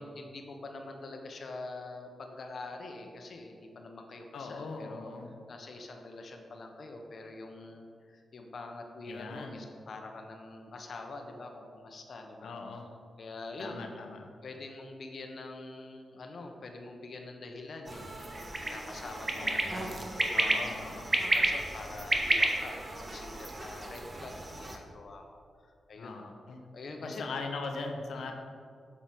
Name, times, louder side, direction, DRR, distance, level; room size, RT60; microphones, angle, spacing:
voice 1, 0.0-5.1 5.5-12.8 13.2-13.9 14.4-25.2 25.6-26.3 26.7-27.3 28.1-28.3, left 2 dB, 65° left, 3 dB, 1.1 m, -45 dB
voice 2, 4.3-5.3 9.1-9.6 12.4-12.9 13.6-14.3 19.4-20.0 20.3-21.1 26.0-26.6 27.0-28.3, left 3 dB, 90° left, 3 dB, 0.9 m, -40 dB
sound 1, 17.9-24.8, right 2 dB, 35° right, 1.2 m, -32 dB
8.1 x 7.5 x 4.5 m, 2.2 s
cardioid pair, 75°, 0 cm